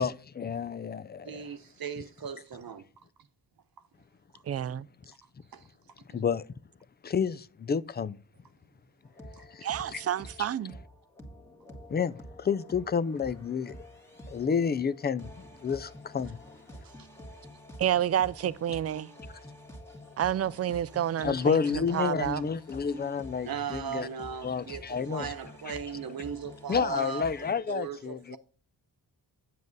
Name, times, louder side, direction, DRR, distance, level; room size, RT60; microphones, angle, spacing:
voice 1, 0.0-1.4 6.1-6.5 7.0-8.2 9.5-10.0 11.9-13.8 14.3-16.4 21.2-24.1 24.4-25.3 26.7-28.4, left 6 dB, 25° left, 0.4 m, -30 dB
voice 2, 1.2-2.8 5.5-5.7 9.4-9.5 16.8-17.1 23.4-28.4, right 7 dB, 60° right, 0.9 m, -38 dB
voice 3, 4.5-4.9 9.6-10.7 17.8-19.1 20.2-22.4, right 10 dB, 40° right, 0.4 m, -29 dB
sound 1, 9.1-27.5, equal, 5° left, 1.7 m, -48 dB
9.3 x 7.5 x 3.9 m
wide cardioid pair, 140°, 40 cm